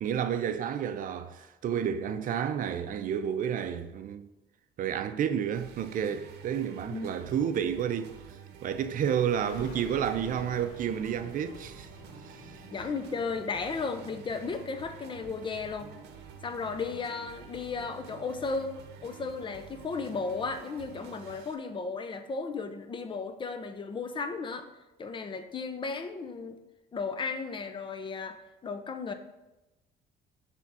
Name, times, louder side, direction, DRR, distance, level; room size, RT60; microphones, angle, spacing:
voice 1, 0.0-4.3 4.8-8.1 8.6-11.9 12.2-12.5, right 8 dB, 55° right, 0.5 m, -30 dB
sound 1, 5.5-21.5, right 8 dB, 80° right, 0.8 m, -49 dB
sound 2, 9.1-20.4, left 3 dB, 75° left, 1.1 m, -52 dB
voice 2, 12.7-15.9 16.4-18.7 19.0-24.7 25.0-26.6 26.9-29.1, left 4 dB, 30° left, 0.7 m, -35 dB
6.8 x 3.5 x 6.0 m
cardioid pair, 110°, 17 cm